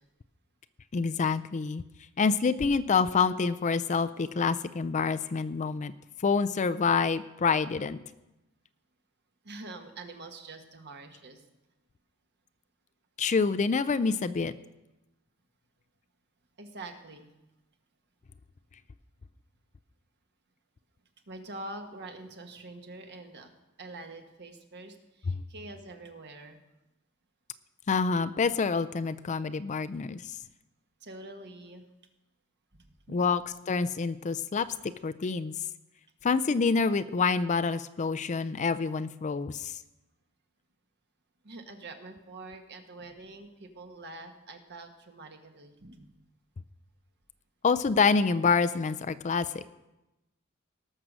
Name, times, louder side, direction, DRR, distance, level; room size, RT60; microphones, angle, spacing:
voice 1, 0.9-1.8 2.2-5.9 6.2-8.0 13.2-14.5 25.3-25.4 27.9-30.3 33.1-34.7 35.0-35.5 36.2-39.8 47.6-49.6, left 5 dB, 35° left, 12 dB, 0.4 m, -27 dB
voice 2, 9.4-11.4 16.6-17.3 21.3-23.5 23.8-26.6 31.0-31.9 32.7-33.2 41.4-46.1, right 2 dB, 50° right, 5 dB, 1.5 m, -45 dB
18.5 x 6.6 x 6.2 m, 0.98 s
head